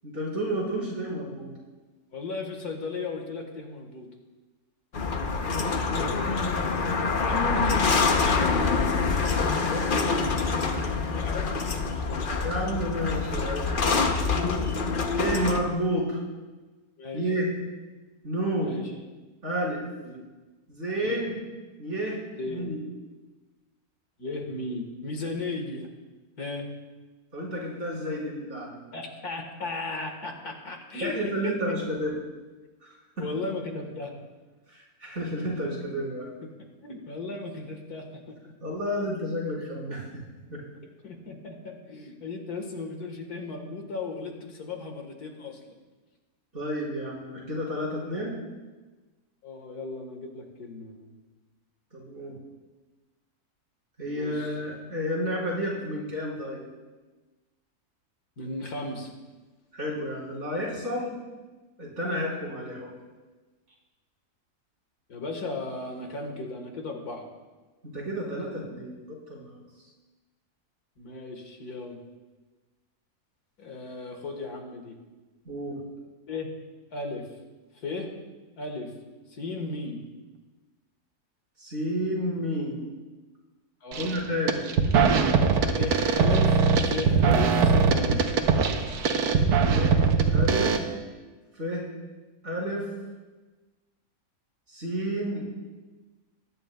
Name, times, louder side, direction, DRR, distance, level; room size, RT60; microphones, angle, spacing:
voice 1, 0.0-1.5 5.4-6.4 9.6-9.9 12.4-14.1 15.2-16.2 17.1-17.5 18.2-18.8 19.4-19.8 20.7-21.4 21.8-22.2 22.5-22.8 27.3-28.8 31.0-32.1 32.8-33.3 34.7-36.3 38.6-40.1 40.5-40.6 46.5-48.3 51.9-52.3 54.0-56.6 59.7-61.1 61.8-62.9 67.9-69.6 75.5-75.8 81.6-82.8 84.0-84.6 89.7-90.0 90.3-90.8 91.5-91.9 92.4-92.8 94.7-95.4, equal, 50° right, -5 dB, 3.9 m, -31 dB
voice 2, 2.1-4.1 7.2-8.9 11.1-12.3 17.0-17.2 18.6-18.9 20.0-20.2 21.0-21.2 22.4-22.7 24.2-25.9 26.4-26.7 28.9-31.1 31.4-31.6 33.2-34.1 36.4-36.5 36.8-38.5 41.0-45.6 49.4-51.1 54.0-54.5 58.4-59.1 65.1-67.3 71.0-72.0 73.6-75.0 76.3-76.5 76.9-77.3 77.8-78.1 78.6-78.9 79.3-80.0 83.8-84.2 85.8-88.2, left 3 dB, 85° left, 3 dB, 2.0 m, -36 dB
sound 1, 4.9-15.6, left 4 dB, 45° left, 0.8 m, -26 dB
sound 2, 83.9-84.2 84.5-90.8, right 5 dB, 90° right, 1.4 m, -21 dB
20.5 x 11.0 x 2.3 m, 1.2 s
omnidirectional pair, 1.6 m